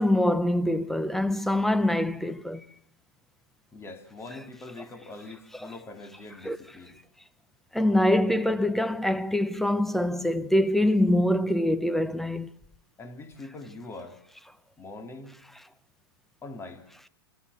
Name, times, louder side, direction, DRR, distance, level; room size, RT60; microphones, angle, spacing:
voice 1, 0.0-2.6 6.4-6.6 7.7-12.5, left 1 dB, ahead, 0.8 m, -24 dB
voice 2, 3.7-6.9 13.0-14.2 14.8-15.3 16.4-16.8, left 2 dB, 20° left, 2.7 m, -43 dB
25.0 x 13.5 x 8.4 m
hypercardioid pair, 120°, 13 cm